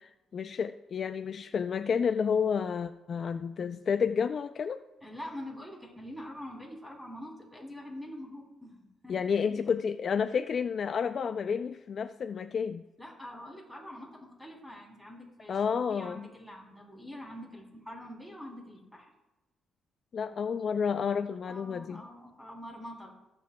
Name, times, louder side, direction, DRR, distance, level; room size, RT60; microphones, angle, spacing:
voice 1, 0.3-4.8 9.1-12.8 15.5-16.3 20.1-22.0, left 6 dB, 50° left, 10 dB, 0.3 m, -30 dB
voice 2, 5.0-9.2 9.5-9.7 13.0-19.1 21.5-23.1, left 1 dB, ahead, -1 dB, 3.1 m, -45 dB
17.0 x 7.6 x 2.2 m, 0.99 s
cardioid pair, 90°, 0 cm